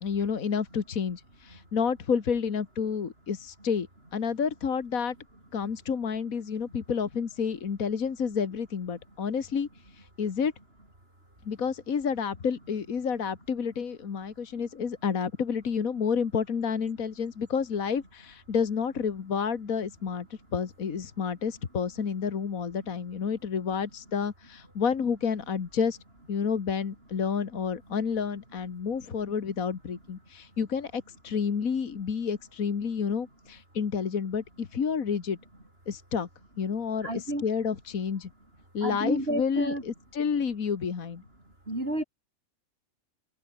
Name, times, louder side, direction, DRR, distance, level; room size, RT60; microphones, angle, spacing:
voice 1, 0.0-3.9 4.1-5.2 5.5-9.7 10.2-10.5 11.5-20.3 20.5-26.0 26.3-35.4 35.9-36.3 36.6-38.3 38.7-41.2, left 6 dB, 70° left, 2.0 m, -30 dB
voice 2, 37.0-37.5 38.8-39.8 41.7-42.0, right 1 dB, 40° right, 7.0 m, -30 dB
omnidirectional pair, 1.5 m